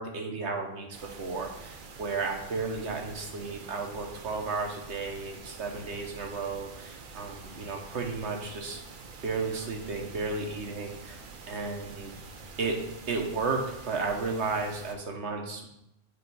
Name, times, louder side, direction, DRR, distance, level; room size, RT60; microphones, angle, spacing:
voice 1, 0.0-8.8 9.2-11.2 11.5-12.2 12.6-12.8 13.1-15.7, right 4 dB, 80° right, 3 dB, 1.2 m, -33 dB
sound 1, 0.9-14.9, right 4 dB, 55° right, 0.8 m, -46 dB
8.2 x 3.1 x 4.6 m, 0.83 s
omnidirectional pair, 1.1 m